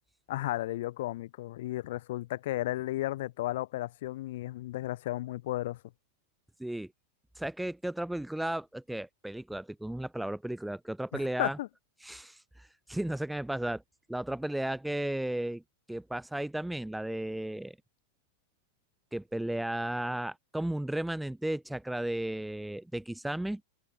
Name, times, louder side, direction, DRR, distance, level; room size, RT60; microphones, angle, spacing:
voice 1, 0.3-5.8 11.1-11.7, left 16 dB, 55° left, 0.9 m, -34 dB
voice 2, 7.4-11.6 12.0-13.8 14.1-15.6 15.9-17.8 19.1-23.6, right 1 dB, 5° right, 0.4 m, -34 dB
figure-of-eight pair, 90°, 0 cm